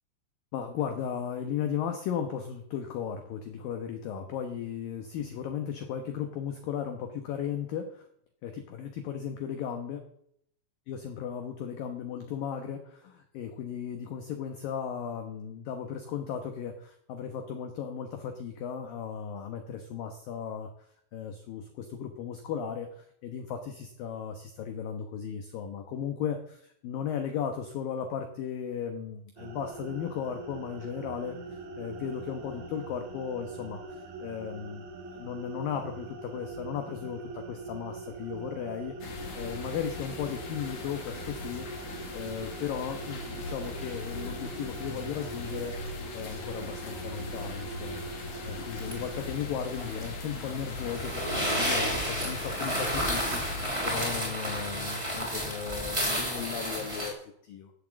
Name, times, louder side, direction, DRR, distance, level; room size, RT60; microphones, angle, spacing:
voice 1, 0.5-8.1 8.4-10.1 10.9-31.4 31.8-34.8 35.1-41.7 42.1-48.0 48.4-51.9 52.2-53.4 53.8-57.7, left 8 dB, 70° left, 6 dB, 2.2 m, -36 dB
sound 1, 29.4-49.3, right 3 dB, 70° right, 3.8 m, -43 dB
sound 2, 39.0-54.2, left 3 dB, 50° left, 3.1 m, -40 dB
sound 3, 48.8-57.1, equal, 5° right, 3.1 m, -32 dB
16.5 x 7.5 x 7.4 m, 0.69 s
omnidirectional pair, 5.6 m